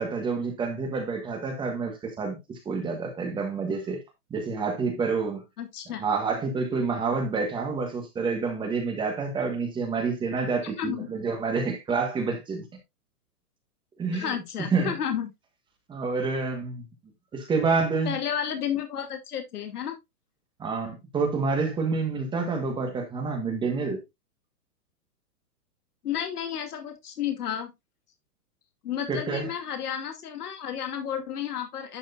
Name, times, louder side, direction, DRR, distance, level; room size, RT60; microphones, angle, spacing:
voice 1, 0.0-4.0 4.3-5.4 6.0-12.6 14.0-14.3 14.7-14.9 15.9-16.8 17.3-18.2 20.6-24.0 29.1-29.5, right 4 dB, 10° right, 1.4 m, -28 dB
voice 2, 5.6-6.0 10.8-11.1 14.1-15.3 18.1-20.0 26.0-27.7 28.8-32.0, left 9 dB, 75° left, 2.6 m, -32 dB
11.0 x 6.3 x 2.5 m
hypercardioid pair, 160°, 46 cm